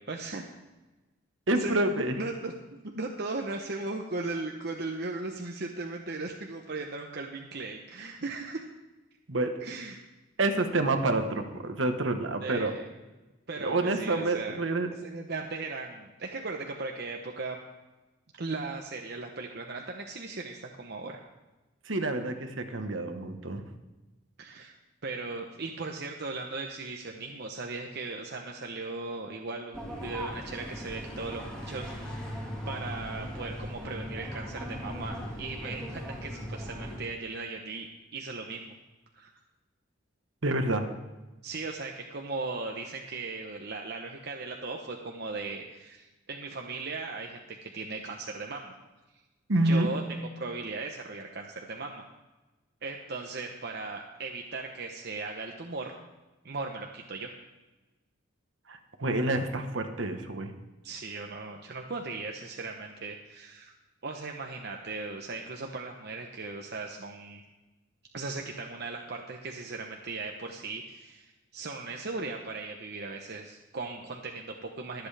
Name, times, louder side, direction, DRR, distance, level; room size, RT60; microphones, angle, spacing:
voice 1, 0.1-0.4 1.5-1.7 2.1-2.5 2.9-8.7 9.6-10.0 12.4-12.8 13.5-14.6 15.0-17.6 18.4-21.2 24.4-24.7 25.0-32.3 32.7-37.9 38.1-38.8 39.1-39.3 41.4-48.7 49.6-50.0 50.4-52.1 52.8-56.0 56.4-57.3 60.8-63.7 64.0-67.4 68.1-75.1, right 3 dB, 55° right, 2 dB, 0.9 m, -37 dB
voice 2, 1.5-2.1 9.3-9.5 10.4-12.7 13.6-14.9 21.9-23.6 40.4-40.9 49.5-49.9 58.7-60.5, right 2 dB, 70° right, 6 dB, 1.3 m, -28 dB
sound 1, 29.7-37.0, equal, 5° left, 2.7 m, -38 dB
22.5 x 8.0 x 3.4 m, 1.1 s
head